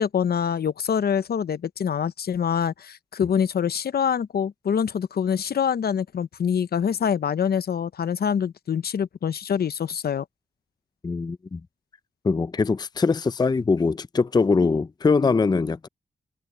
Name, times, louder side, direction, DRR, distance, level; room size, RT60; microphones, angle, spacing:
voice 1, 0.0-10.2, left 7 dB, 65° left, 0.7 m, -25 dB
voice 2, 11.0-11.6 12.2-15.9, left 4 dB, 25° left, 0.5 m, -22 dB
wide cardioid pair, 95°, 17 cm